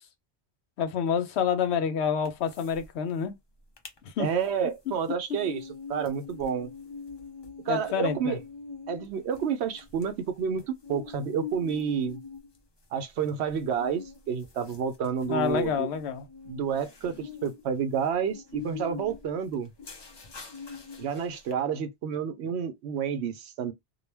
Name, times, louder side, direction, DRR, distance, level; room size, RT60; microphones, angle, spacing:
voice 1, 0.8-3.4 4.0-4.3 7.7-8.4 15.3-16.3, left 7 dB, 80° left, 0.9 m, -28 dB
sound 1, 2.2-2.9 3.1-3.2 3.6-4.0 4.4-21.5, left 5 dB, 35° left, 0.4 m, -44 dB
voice 2, 4.2-6.7 7.7-8.4 8.9-12.2 12.9-15.9 16.5-19.7 21.0-23.7, right 7 dB, 80° right, 0.9 m, -30 dB
2.3 x 2.2 x 3.2 m
omnidirectional pair, 1.1 m